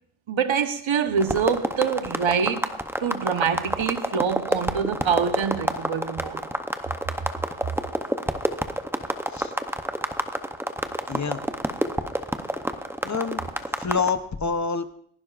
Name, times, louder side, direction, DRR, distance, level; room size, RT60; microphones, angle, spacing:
voice 1, 0.3-2.7 3.0-6.5, right 7 dB, 65° right, 1.1 m, -25 dB
sound 1, 1.2-14.1, right 1 dB, 5° right, 0.6 m, -28 dB
voice 2, 11.1-11.4 13.0-13.4 13.8-14.9, left 5 dB, 35° left, 0.8 m, -27 dB
28.5 x 11.5 x 2.5 m
wide cardioid pair, 155°, 50 cm